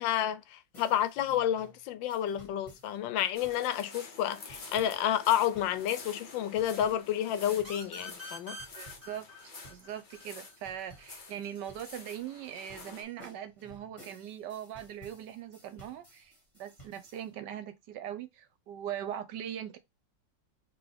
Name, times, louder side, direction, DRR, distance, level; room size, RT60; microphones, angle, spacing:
voice 1, 0.0-8.6, left 11 dB, 85° left, 1.3 m, -30 dB
sound 1, 0.7-17.3, right 1 dB, 20° left, 1.9 m, -57 dB
sound 2, 3.3-13.0, left 3 dB, 40° left, 0.8 m, -49 dB
sound 3, 7.6-11.0, left 1 dB, 10° right, 1.6 m, -46 dB
voice 2, 8.7-16.3 16.6-19.8, right 10 dB, 70° right, 1.3 m, -41 dB
3.8 x 3.1 x 3.4 m
omnidirectional pair, 2.0 m